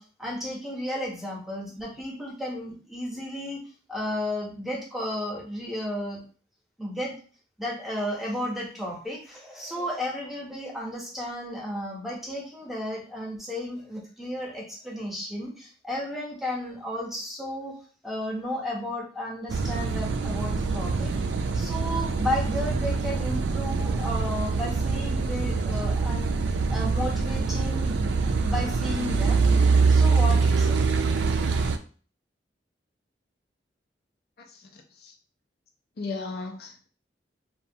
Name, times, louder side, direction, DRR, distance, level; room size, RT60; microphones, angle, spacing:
voice 1, 0.0-3.6 3.9-6.2 6.8-7.1 7.6-17.7 18.0-21.1 21.5-26.3 26.7-30.8, left 1 dB, ahead, -3 dB, 0.8 m, -33 dB
Car passing by / Idling / Accelerating revving vroom, 19.5-31.8, right 4 dB, 90° right, 0.3 m, -24 dB
voice 2, 34.5-35.1 36.0-36.9, left 3 dB, 60° left, 3 dB, 0.5 m, -36 dB
2.9 x 2.2 x 2.7 m, 0.40 s
head